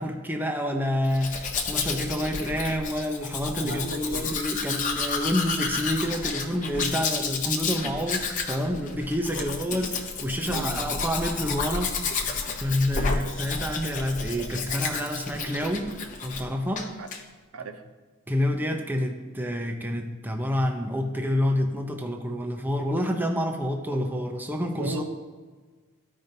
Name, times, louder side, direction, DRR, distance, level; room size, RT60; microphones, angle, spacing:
voice 1, 0.0-12.0 12.6-15.9 16.2-16.9 18.3-25.0, equal, 10° right, 3 dB, 0.6 m, -28 dB
Domestic sounds home sounds, 1.0-16.5 16.7-17.2, left 4 dB, 35° left, 0.8 m, -31 dB
voice 2, 3.6-4.3 9.3-9.5 10.5-11.0 13.0-13.3 17.0-17.1 17.5-17.8 24.8-25.0, right 3 dB, 80° right, 6 dB, 0.7 m, -36 dB
14.0 x 5.2 x 2.7 m, 1.4 s
head